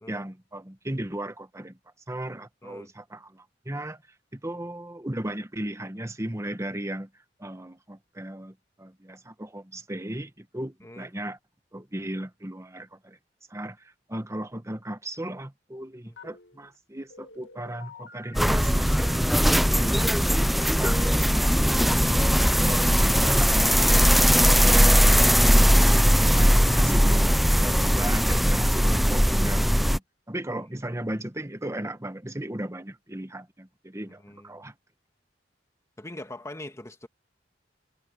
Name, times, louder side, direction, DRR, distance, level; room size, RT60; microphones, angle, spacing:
voice 1, 0.1-1.8 2.1-4.0 4.3-7.1 7.4-11.4 11.7-13.2 13.5-22.2 22.6-25.2 25.6-30.0 30.3-34.7, right 1 dB, 15° right, 1.3 m, -36 dB
voice 2, 2.6-2.9 10.8-11.1 16.1-16.2 30.6-30.8 34.1-34.7 36.0-37.1, left 1 dB, 15° left, 1.9 m, -43 dB
Telephone, 16.2-16.8 17.1-18.7 19.1-21.9 22.2-22.4 22.6-22.8 23.1-23.3 23.6-23.8 24.1-24.3 24.5-24.8, left 3 dB, 75° left, 2.1 m, -48 dB
sound 1, 18.3-30.0, equal, ahead, 0.3 m, -20 dB
head